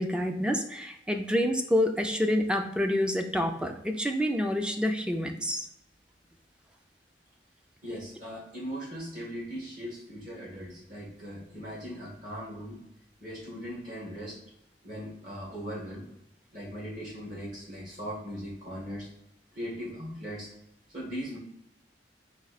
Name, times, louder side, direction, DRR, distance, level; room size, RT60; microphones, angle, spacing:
voice 1, 0.0-5.7, left 1 dB, 5° right, 5 dB, 0.4 m, -28 dB
voice 2, 7.8-12.8 13.2-14.4 14.8-16.1 16.5-19.1 19.5-20.5 20.9-21.4, equal, 50° right, -4 dB, 1.5 m, -39 dB
4.2 x 2.7 x 4.1 m, 0.84 s
head